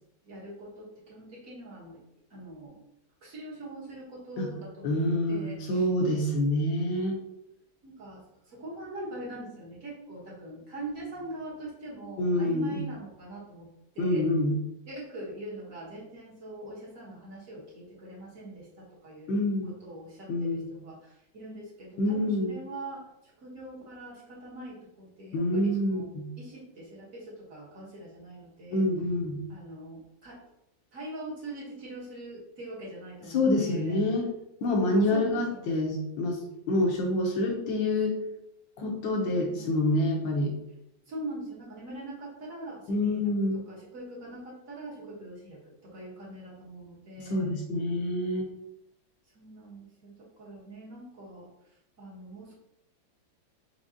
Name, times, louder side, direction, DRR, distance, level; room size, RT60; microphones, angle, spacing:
voice 1, 0.2-2.0 2.3-2.8 3.2-5.9 7.8-13.7 13.9-14.3 14.8-28.9 29.5-30.4 30.9-34.0 34.8-35.8 39.3-39.7 41.1-43.2 43.5-47.5 49.3-51.5 52.0-52.5, right 1 dB, 45° right, -5 dB, 1.5 m, -43 dB
voice 2, 4.8-7.2 12.2-12.8 14.0-14.5 19.3-19.7 20.3-20.7 22.0-22.5 25.3-26.3 28.7-29.4 33.3-34.3 34.6-36.4 36.7-38.2 38.8-40.5 42.9-43.6 47.2-48.5, left 1 dB, 75° left, 1 dB, 1.6 m, -27 dB
4.9 x 3.9 x 2.7 m, 0.82 s
omnidirectional pair, 2.1 m